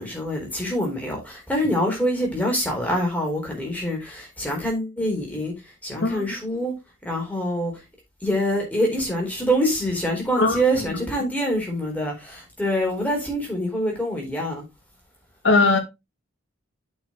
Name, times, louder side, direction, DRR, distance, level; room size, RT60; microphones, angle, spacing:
voice 1, 0.0-6.7 7.0-7.8 8.2-14.6, equal, 10° left, 4.1 m, -25 dB
voice 2, 15.4-15.8, left 3 dB, 70° left, 2.3 m, -19 dB
8.7 x 6.2 x 3.8 m
head